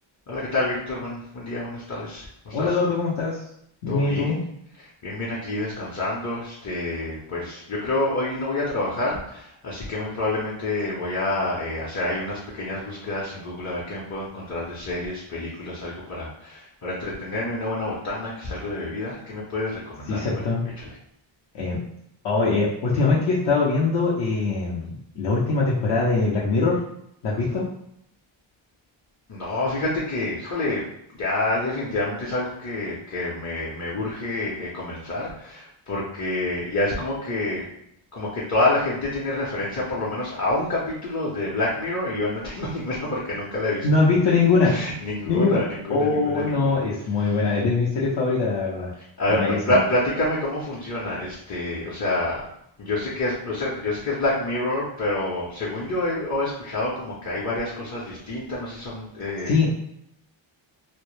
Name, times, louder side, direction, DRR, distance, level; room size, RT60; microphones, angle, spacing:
voice 1, 0.3-2.8 3.9-4.4 5.0-20.3 20.8-20.9 27.4-27.6 29.3-30.8 31.1-37.6 38.1-43.9 44.6-46.8 47.2-47.4 49.2-52.5 52.8-59.6, left 2 dB, 35° left, -6 dB, 0.7 m, -28 dB
voice 2, 2.5-3.4 3.8-4.4 20.1-20.6 21.5-21.8 22.2-26.8 27.2-27.6 43.8-44.8 45.3-45.6 45.9-48.9 49.3-49.8 59.5-59.7, left 3 dB, 65° left, -6 dB, 0.7 m, -22 dB
2.1 x 2.1 x 3.1 m, 0.74 s
cardioid pair, 100°, 48 cm